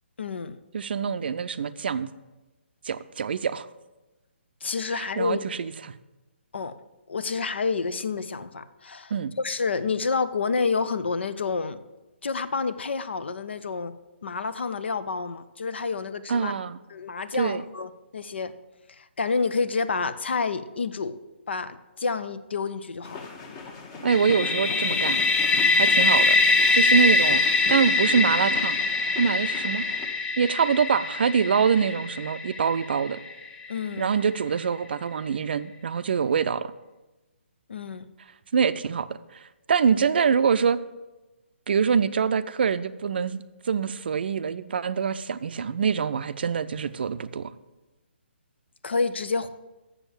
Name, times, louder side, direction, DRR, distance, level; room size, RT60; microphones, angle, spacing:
voice 1, 0.2-0.6 4.6-5.4 6.5-6.7 7.1-9.1 9.4-11.8 12.2-13.9 14.2-16.5 16.9-18.5 18.9-21.2 21.5-23.3 33.7-34.1 37.7-38.1 48.8-49.5, left 4 dB, 65° left, 13 dB, 0.7 m, -29 dB
voice 2, 0.7-2.1 2.8-3.7 4.9-5.7 9.1-9.3 16.3-16.8 17.4-17.6 24.0-25.2 25.7-26.4 26.7-28.8 29.2-29.9 30.4-33.2 34.0-36.7 38.5-39.1 39.7-40.8 41.7-47.5, right 6 dB, 55° right, 14 dB, 0.5 m, -25 dB
sound 1, 23.0-30.1, left 4 dB, 25° left, 1.1 m, -39 dB
sound 2, 24.1-33.8, left 3 dB, 10° left, 0.5 m, -23 dB
7.1 x 7.0 x 7.1 m, 1.1 s
figure-of-eight pair, 140°, 7 cm